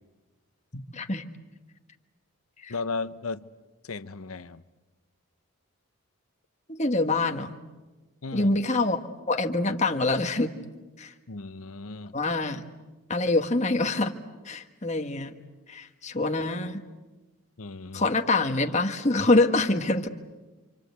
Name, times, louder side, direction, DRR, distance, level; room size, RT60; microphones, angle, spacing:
voice 1, 0.7-1.2 2.6-2.7 6.7-7.6 8.3-9.0 9.3-10.5 11.0-11.1 12.1-12.6 13.1-14.1 14.4-15.3 15.7-16.8 17.9-20.1, left 2 dB, 30° left, 1.4 m, -25 dB
voice 2, 2.7-3.5 3.8-4.6 8.2-8.5 11.3-12.1 17.6-18.1, left 3 dB, 75° left, 0.9 m, -35 dB
28.0 x 26.0 x 8.1 m
head